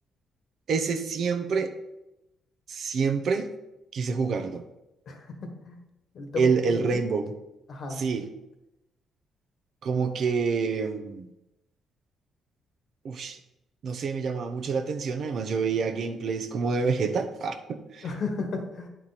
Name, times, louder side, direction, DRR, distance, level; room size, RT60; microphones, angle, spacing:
voice 1, 0.7-1.7 2.7-3.5 3.9-4.6 6.4-7.3 8.0-8.3 9.8-11.3 13.0-13.4 13.8-18.0, right 5 dB, 60° right, 7 dB, 0.7 m, -27 dB
voice 2, 5.1-5.8 6.1-7.1 7.7-8.1 18.0-18.9, left 4 dB, 60° left, 4 dB, 1.3 m, -34 dB
9.1 x 4.6 x 4.1 m, 0.94 s
cardioid pair, 90°, 0 cm